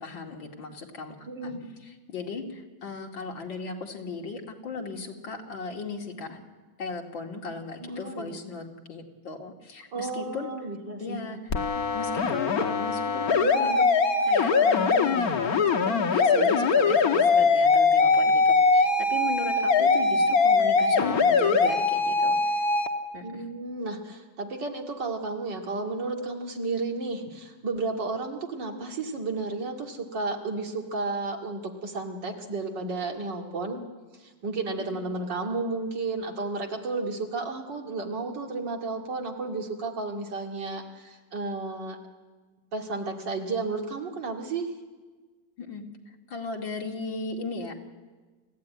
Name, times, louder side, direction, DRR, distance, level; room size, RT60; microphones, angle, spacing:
voice 1, 0.0-1.5 1.8-6.4 6.8-10.5 11.0-13.9 14.2-22.7 23.1-23.4 34.8-34.9 45.6-45.8 46.3-47.7, left 4 dB, 80° left, 2 dB, 3.2 m, -36 dB
voice 2, 1.3-1.7 7.8-8.4 9.9-11.4 16.2-16.7 23.2-33.8 34.2-42.0 42.7-44.7, right 3 dB, 70° right, 2 dB, 3.0 m, -33 dB
sound 1, 11.5-22.9, left 4 dB, 55° left, 1.7 m, -22 dB
29.0 x 15.0 x 9.5 m, 1.4 s
omnidirectional pair, 2.0 m